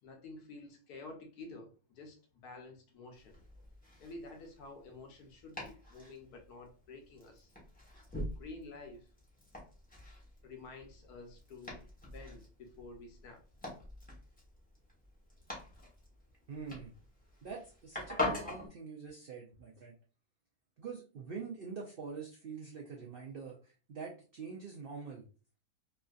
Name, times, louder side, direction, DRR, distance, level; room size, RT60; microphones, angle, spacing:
voice 1, 0.0-3.4 4.0-7.5 8.3-9.1 10.4-13.4, left 3 dB, 75° left, 1.3 m, -50 dB
Domestic sounds home sounds, 3.1-18.7, left 2 dB, 5° left, 0.8 m, -44 dB
voice 2, 16.5-17.0 17.4-19.9 20.8-25.3, right 5 dB, 75° right, 0.5 m, -45 dB
3.2 x 2.5 x 2.3 m
omnidirectional pair, 1.7 m